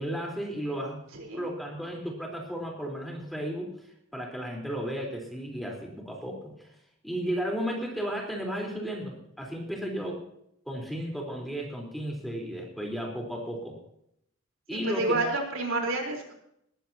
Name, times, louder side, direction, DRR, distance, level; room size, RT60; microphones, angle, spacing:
voice 1, 0.0-1.0 1.3-3.7 4.1-6.7 7.0-10.2 10.7-13.8 14.7-15.3, equal, ahead, -1 dB, 3.9 m, -34 dB
voice 2, 14.8-16.3, right 2 dB, 65° right, 1 dB, 4.1 m, -29 dB
20.0 x 15.5 x 2.9 m, 0.73 s
head